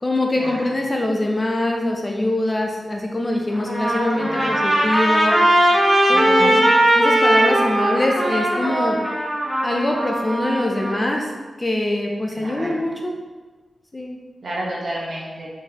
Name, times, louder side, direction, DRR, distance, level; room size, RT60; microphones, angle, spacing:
voice 1, 0.0-5.4 6.1-6.6 6.9-9.0 9.6-11.3 11.6-13.2 13.9-14.2, left 1 dB, 20° left, 1 dB, 0.4 m, -23 dB
Trumpet, 3.5-11.0, right 1 dB, 10° right, 0.9 m, -19 dB
voice 2, 4.2-4.7 6.1-6.6 12.4-12.9 14.4-15.5, right 1 dB, 45° right, -4 dB, 1.0 m, -31 dB
4.1 x 4.0 x 2.8 m, 1.3 s
wide cardioid pair, 160°, 0 cm